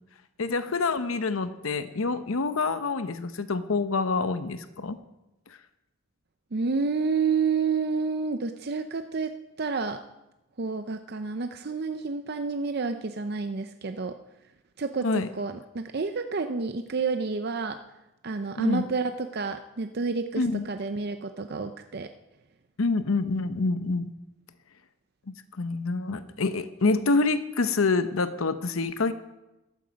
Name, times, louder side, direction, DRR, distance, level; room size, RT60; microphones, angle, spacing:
voice 1, 0.4-5.0 15.0-15.3 18.6-18.8 20.4-20.6 22.8-24.1 25.3-29.1, left 3 dB, 85° left, 11 dB, 0.8 m, -27 dB
voice 2, 6.5-9.3 9.6-10.0 10.6-14.1 14.8-17.8 18.2-22.1, right 4 dB, 50° right, 8 dB, 0.6 m, -29 dB
14.5 x 13.0 x 5.2 m, 0.96 s
head